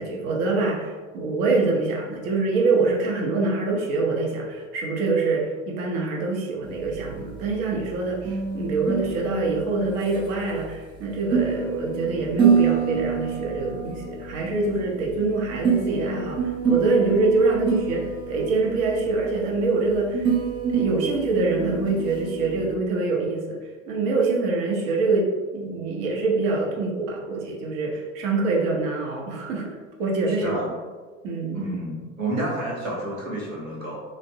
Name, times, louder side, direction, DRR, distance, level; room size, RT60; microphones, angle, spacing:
voice 1, 0.0-20.3 20.7-23.6 23.9-30.6 31.2-31.6, right 3 dB, 45° right, -1 dB, 0.7 m, -25 dB
sound 1, 6.6-22.7, right 6 dB, 15° right, 0.5 m, -27 dB
voice 2, 30.3-30.7 31.5-34.0, right 2 dB, 80° right, -4 dB, 0.9 m, -29 dB
3.3 x 2.1 x 2.6 m, 1.4 s
figure-of-eight pair, 75°, 39 cm